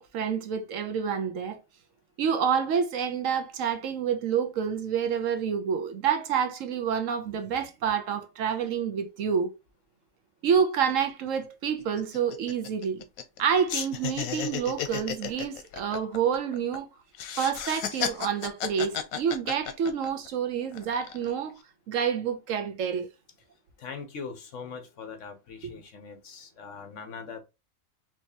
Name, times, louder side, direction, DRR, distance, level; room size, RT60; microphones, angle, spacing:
voice 1, 0.0-1.6 2.2-9.5 10.4-13.0 13.4-16.9 17.4-21.5 21.9-23.1, right 7 dB, 75° right, 1.1 m, -28 dB
sound 1, 10.9-11.0 11.3-11.5 11.8-13.4 13.7-16.8 17.1-20.3 20.7-21.3, left 9 dB, 85° left, 1.1 m, -34 dB
voice 2, 23.8-27.4, left 5 dB, 65° left, 1.2 m, -41 dB
4.4 x 2.9 x 2.8 m
omnidirectional pair, 1.4 m